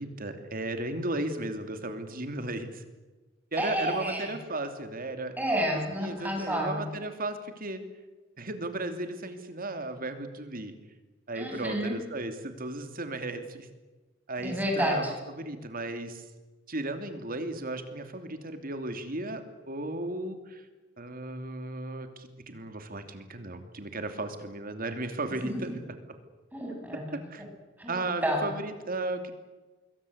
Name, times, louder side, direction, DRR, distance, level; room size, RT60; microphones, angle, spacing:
voice 1, 0.0-2.8 3.5-5.4 6.0-7.8 8.4-10.8 11.3-13.7 14.3-16.2 16.7-20.7 21.0-25.8 27.1-27.4 27.9-29.3, right 2 dB, 50° right, 8 dB, 2.9 m, -35 dB
voice 2, 3.6-4.3 5.4-6.9 11.3-12.0 14.4-15.1 25.4-25.5 26.5-27.2 27.8-28.0 28.2-28.5, equal, 10° right, 0 dB, 7.9 m, -30 dB
26.5 x 22.0 x 8.1 m, 1.2 s
head